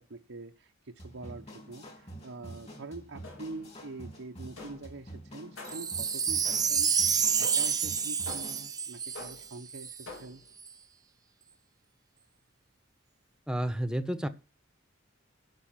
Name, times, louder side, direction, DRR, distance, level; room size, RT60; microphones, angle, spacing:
voice 1, 0.0-10.4, right 3 dB, 70° right, 0 dB, 1.0 m, -45 dB
sound 1, 1.0-8.7, right 1 dB, 35° left, 3.3 m, -47 dB
sound 2, 3.2-3.7 4.6-5.0 5.6-6.0 6.4-6.9 7.4-7.8 8.3-8.7 9.2-9.6 10.1-10.5, left 3 dB, 85° left, 3.7 m, -47 dB
Wind chime, 5.7-10.0 10.6-10.7, right 6 dB, 20° right, 0.7 m, -29 dB
voice 2, 13.5-14.3, right 1 dB, 5° right, 10 dB, 1.1 m, -30 dB
12.0 x 5.7 x 5.8 m, 0.31 s
head